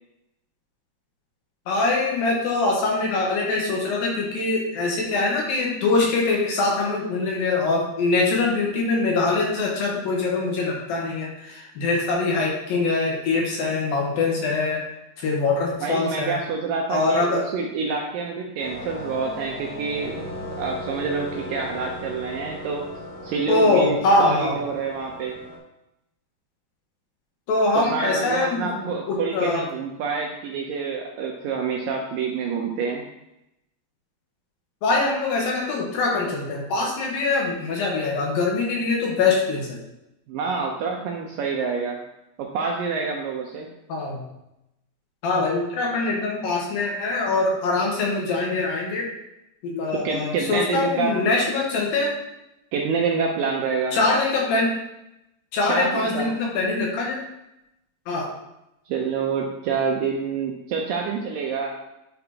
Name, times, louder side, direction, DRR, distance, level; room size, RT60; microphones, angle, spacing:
voice 1, 1.7-14.8 15.2-16.4 16.9-17.4 23.5-24.6 27.5-29.6 34.8-39.8 43.9-44.2 45.2-49.1 49.6-52.1 53.9-54.7 55.5-57.2 58.1-58.3, left 3 dB, 75° left, -2 dB, 2.7 m, -23 dB
voice 2, 15.8-20.2 20.6-22.8 23.2-25.4 27.9-33.0 40.3-42.0 42.4-43.7 50.0-51.2 52.7-54.0 55.7-56.3 58.9-61.7, right 5 dB, 80° right, 0 dB, 2.0 m, -27 dB
sound 1, 18.6-25.6, left 1 dB, 90° left, 1.2 m, -37 dB
9.7 x 4.2 x 2.8 m, 0.87 s
omnidirectional pair, 4.5 m